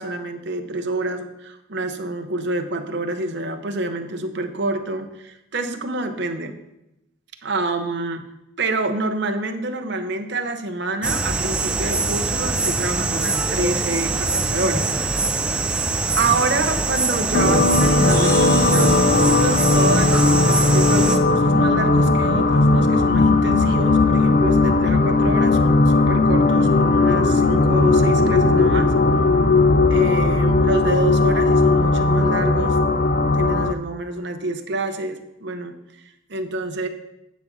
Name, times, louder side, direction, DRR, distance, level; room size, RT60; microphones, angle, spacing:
voice 1, 0.0-6.5 7.4-8.2 8.6-14.9 16.2-28.9 29.9-32.8 33.3-36.9, right 2 dB, 60° right, 6 dB, 0.8 m, -27 dB
sound 1, 11.0-21.2, right 3 dB, 5° right, 0.6 m, -23 dB
sound 2, 17.3-33.7, left 3 dB, 40° left, 0.5 m, -17 dB
sound 3, 18.1-20.7, left 1 dB, 20° left, 1.2 m, -35 dB
9.5 x 4.1 x 6.7 m, 0.88 s
head